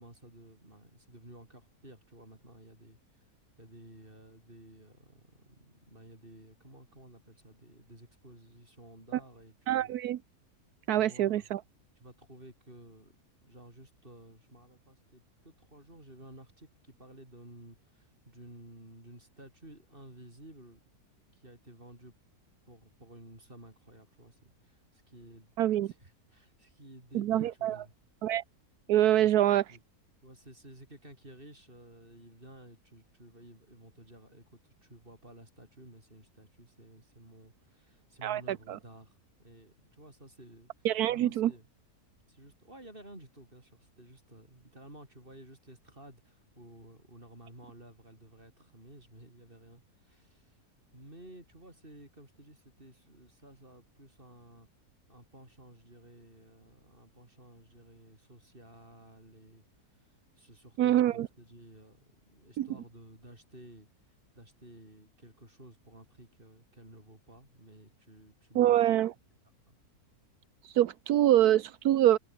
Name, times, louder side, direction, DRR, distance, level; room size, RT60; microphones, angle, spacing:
voice 1, 0.0-3.3 3.6-9.9 11.0-11.5 12.0-13.2 13.4-20.8 21.3-22.1 22.6-27.9 29.1-29.8 30.2-41.7 42.3-50.6 50.9-54.7 55.1-68.8 69.7-69.8, right 1 dB, 35° right, 7.7 m, -54 dB
voice 2, 9.7-10.2 10.9-11.6 25.6-25.9 27.1-27.8 28.2-28.4 28.9-29.6 38.2-38.8 40.8-41.5 60.8-61.3 62.6-62.7 68.5-69.1 70.6-72.2, right 12 dB, 80° right, 1.3 m, -25 dB
omnidirectional pair, 1.6 m